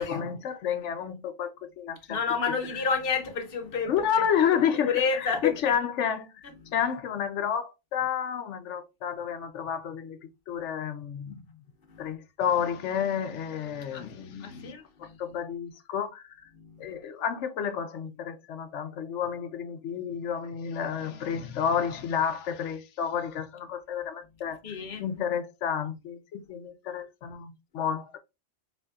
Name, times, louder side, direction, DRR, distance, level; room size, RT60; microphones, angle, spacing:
voice 1, 0.0-2.2 3.9-6.4 6.7-11.4 12.0-14.7 15.0-16.4 16.8-24.6 25.0-28.2, left 8 dB, 85° left, 1.0 m, -30 dB
voice 2, 2.1-4.2 4.8-5.8 6.4-6.7 11.9-12.2 13.9-14.1 14.4-15.2 16.5-17.0 24.6-25.1, left 5 dB, 55° left, 0.9 m, -30 dB
5.2 x 2.7 x 2.4 m
omnidirectional pair, 1.2 m